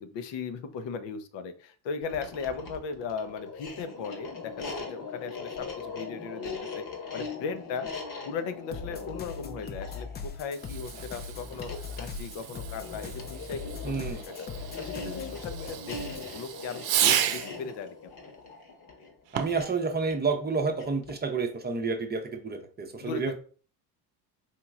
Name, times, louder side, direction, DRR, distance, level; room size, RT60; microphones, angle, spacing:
voice 1, 0.0-6.8 7.1-7.9 8.2-18.1 23.0-23.3, left 5 dB, 60° left, 9 dB, 0.7 m, -37 dB
sound 1, 2.1-21.3, left 4 dB, 40° left, 1.2 m, -41 dB
sound 2, 8.7-16.3, left 4 dB, 20° left, 0.5 m, -41 dB
Fireworks, 10.5-17.6 19.3-19.7, right 10 dB, 65° right, 0.7 m, -33 dB
voice 2, 13.8-14.2 19.3-23.3, right 4 dB, 20° right, 6 dB, 0.7 m, -30 dB
4.4 x 2.9 x 2.4 m, 0.41 s
supercardioid pair, 80°, 49 cm